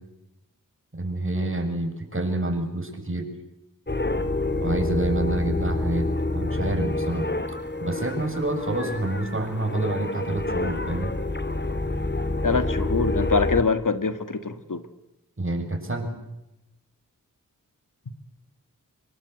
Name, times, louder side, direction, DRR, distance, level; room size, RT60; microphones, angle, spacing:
voice 1, 0.9-3.3 4.6-7.3 7.8-11.1 15.4-16.1, right 2 dB, 40° right, 5 dB, 7.4 m, -28 dB
sound 1, 3.9-13.6, left 2 dB, 30° left, 2.4 m, -28 dB
voice 2, 12.4-14.8, left 4 dB, 70° left, 11 dB, 2.0 m, -24 dB
26.5 x 24.0 x 8.0 m, 0.90 s
wide cardioid pair, 55°, 33 cm